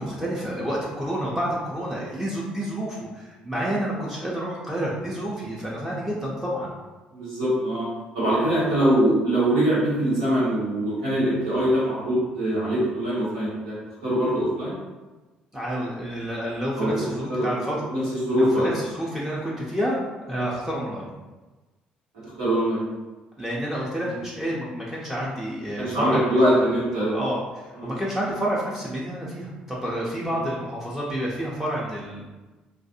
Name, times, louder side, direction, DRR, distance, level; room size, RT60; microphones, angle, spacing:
voice 1, 0.0-6.7 15.5-17.8 18.4-20.0 20.3-21.1 23.4-26.4 26.7-32.2, equal, 5° right, -6 dB, 0.6 m, -29 dB
voice 2, 7.1-7.9 8.1-13.8 14.0-14.7 16.8-16.9 17.3-17.6 17.9-18.6 20.3-20.5 22.2-22.9 24.1-24.2 25.8-27.2 27.8-27.9, right 1 dB, 75° right, -10 dB, 1.2 m, -23 dB
2.4 x 2.3 x 2.7 m, 1.2 s
figure-of-eight pair, 50°, 4 cm